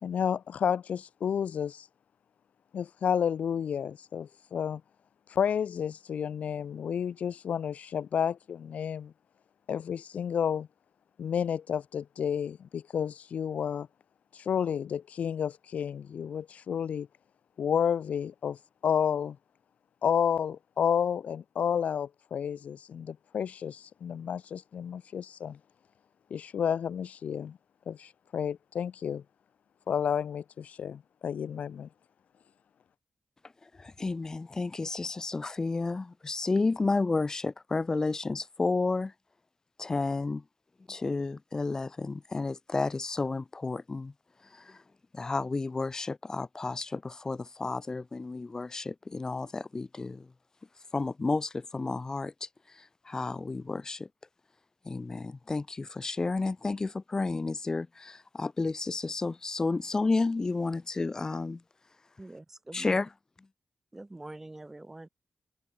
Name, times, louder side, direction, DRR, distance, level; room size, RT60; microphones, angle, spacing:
voice 1, 0.0-1.8 2.7-4.8 5.3-9.1 9.7-10.7 11.2-13.9 14.3-17.1 17.6-18.6 18.8-19.4 20.0-25.6 26.3-27.6 27.9-29.2 29.9-31.9, left 8 dB, 85° left, 1.7 m, -31 dB
voice 2, 33.6-39.1 39.8-40.4 40.9-44.1 44.5-44.8 45.1-50.3 50.9-54.1 54.8-61.6 62.7-63.1, left 3 dB, 25° left, 2.0 m, -31 dB
voice 3, 62.2-63.0 63.9-65.1, right 2 dB, 15° right, 7.0 m, -45 dB
open air
wide cardioid pair, 155°, 2 cm